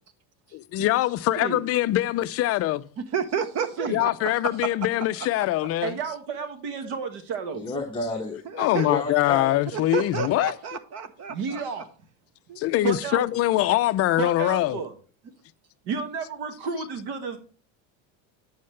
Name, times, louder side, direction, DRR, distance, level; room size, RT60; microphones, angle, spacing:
voice 1, 0.5-2.9 3.9-5.9 8.5-10.5 12.6-14.8, left 15 dB, 35° left, 0.4 m, -23 dB
voice 2, 3.0-4.3 4.6-4.7 8.4-8.9 9.7-11.6 12.5-12.6, right 7 dB, 40° right, 0.9 m, -30 dB
voice 3, 5.8-7.7 11.3-11.9 12.8-13.2 14.2-14.9 15.8-17.4, right 5 dB, 65° right, 1.4 m, -31 dB
voice 4, 7.6-8.4 8.8-9.6, left 3 dB, 10° left, 1.0 m, -30 dB
8.6 x 7.3 x 3.2 m
cardioid pair, 135°, 41 cm